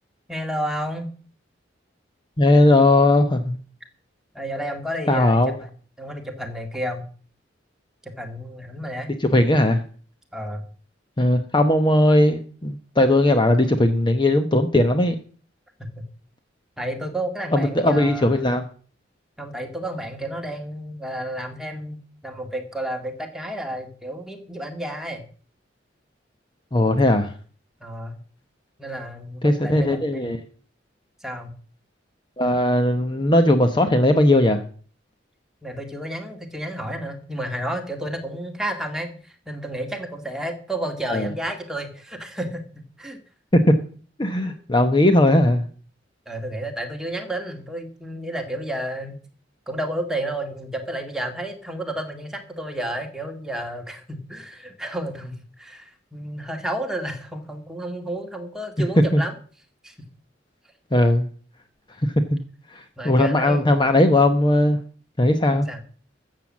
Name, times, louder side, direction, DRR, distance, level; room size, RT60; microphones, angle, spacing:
voice 1, 0.3-1.1 4.3-5.7 6.0-7.1 8.2-9.1 10.3-10.6 13.5-13.7 15.8-16.0 16.8-18.5 19.4-25.3 27.8-28.2 28.8-30.4 31.2-31.5 35.6-39.1 39.5-42.6 43.0-43.2 44.4-44.6 46.3-49.2 49.7-59.3 59.8-59.9 63.0-63.8 65.7-65.8, right 1 dB, 5° right, 3 dB, 2.0 m, -31 dB
voice 2, 2.4-3.6 5.1-5.5 9.2-9.8 11.2-15.1 17.5-18.6 26.7-27.3 29.4-30.4 32.4-34.6 41.1-41.3 43.5-43.8 44.2-45.7 59.1-59.2 60.9-61.3 62.0-62.4 62.7-64.8 65.2-65.7, left 1 dB, 25° left, 7 dB, 0.9 m, -18 dB
13.5 x 7.6 x 7.3 m, 0.43 s
head